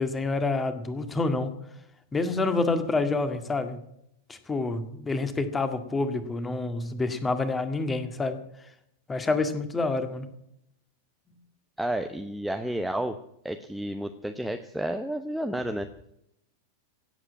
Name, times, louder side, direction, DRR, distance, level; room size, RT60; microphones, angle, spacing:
voice 1, 0.0-1.5 2.1-3.8 4.3-8.4 9.1-10.3, left 3 dB, 15° left, 9 dB, 1.9 m, -28 dB
voice 2, 11.8-13.2 13.4-15.9, right 1 dB, ahead, 6 dB, 0.9 m, -31 dB
17.0 x 8.2 x 9.3 m, 0.76 s
figure-of-eight pair, 90°, 0 cm